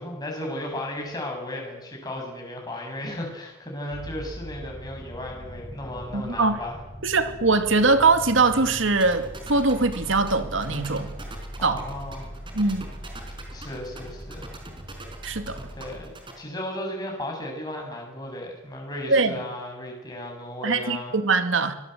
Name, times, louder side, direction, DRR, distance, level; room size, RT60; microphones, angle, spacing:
voice 1, 0.0-6.8 11.6-12.4 13.5-14.5 15.8-16.1 16.4-21.1, left 1 dB, 20° left, 0 dB, 7.4 m, -35 dB
sound 1, 3.9-16.1, equal, 5° left, 6.8 m, -40 dB
voice 2, 6.1-6.6 7.0-11.1 11.6-11.8 12.5-12.9 15.2-15.6 19.1-19.4 20.6-21.7, right 3 dB, 65° right, 8 dB, 2.3 m, -22 dB
sound 2, 9.0-16.3, right 3 dB, 25° right, 4.9 m, -42 dB
25.5 x 19.5 x 8.1 m, 0.96 s
head